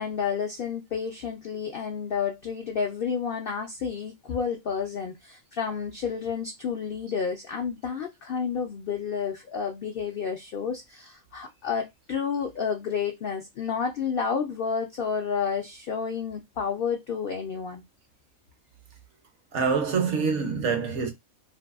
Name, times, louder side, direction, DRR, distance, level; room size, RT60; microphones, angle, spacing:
voice 1, 0.0-17.8, left 6 dB, 75° left, 0.5 m, -30 dB
voice 2, 19.5-21.1, right 5 dB, 65° right, 0.8 m, -25 dB
2.6 x 2.6 x 2.3 m
omnidirectional pair, 1.5 m